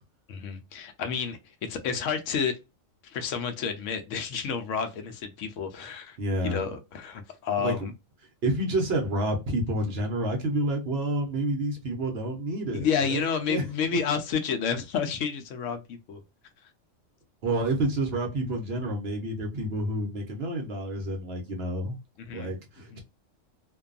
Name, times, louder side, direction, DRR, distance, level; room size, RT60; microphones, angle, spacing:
voice 1, 0.3-2.6 3.0-6.2 6.4-7.9 12.7-16.2 22.2-22.5 22.9-23.0, left 6 dB, 75° left, 0.9 m, -30 dB
voice 2, 6.2-6.6 7.6-7.7 8.4-13.2 13.5-13.6 17.4-22.0 22.3-23.0, right 1 dB, 60° right, 0.9 m, -29 dB
2.5 x 2.3 x 2.4 m
omnidirectional pair, 1.3 m